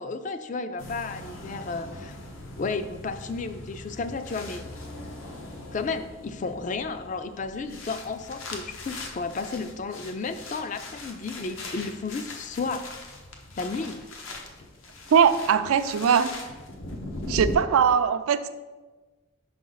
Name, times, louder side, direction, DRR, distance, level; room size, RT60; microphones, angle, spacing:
voice 1, 0.0-2.1 2.5-4.6 5.7-12.9 13.6-14.0, left 4 dB, 35° left, 0.3 m, -33 dB
sound 1, 0.8-17.6, left 2 dB, 75° left, 0.9 m, -40 dB
voice 2, 15.1-16.3 17.3-18.5, right 7 dB, 85° right, 0.4 m, -21 dB
5.7 x 5.1 x 3.9 m
head